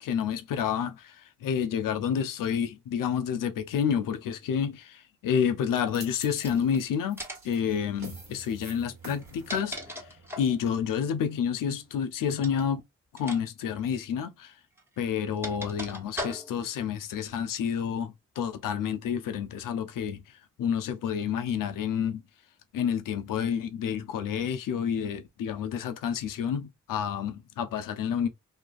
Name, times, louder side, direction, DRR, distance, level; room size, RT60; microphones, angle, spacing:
voice 1, 0.0-9.8 10.4-12.8 13.1-14.5 15.0-20.2 20.6-22.2 22.7-28.3, left 8 dB, 85° left, 0.5 m, -29 dB
sound 1, 5.9-12.2, right 3 dB, 60° right, 1.5 m, -49 dB
sound 2, 6.4-6.8 7.2-7.6 9.1-10.6 12.4-12.7 13.2-13.4 13.7-13.8 14.8-16.7, left 1 dB, 5° right, 1.1 m, -39 dB
2.7 x 2.4 x 2.2 m
supercardioid pair, 45°, 32 cm